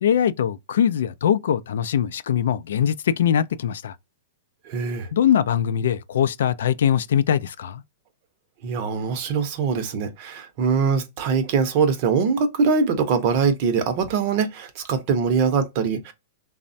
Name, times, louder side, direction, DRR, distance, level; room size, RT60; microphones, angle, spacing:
voice 1, 0.0-4.0 5.1-7.8, left 9 dB, 75° left, 0.3 m, -22 dB
voice 2, 4.6-5.1 8.6-16.1, right 5 dB, 40° right, 0.6 m, -22 dB
3.2 x 2.0 x 2.6 m
supercardioid pair, 160°, 0 cm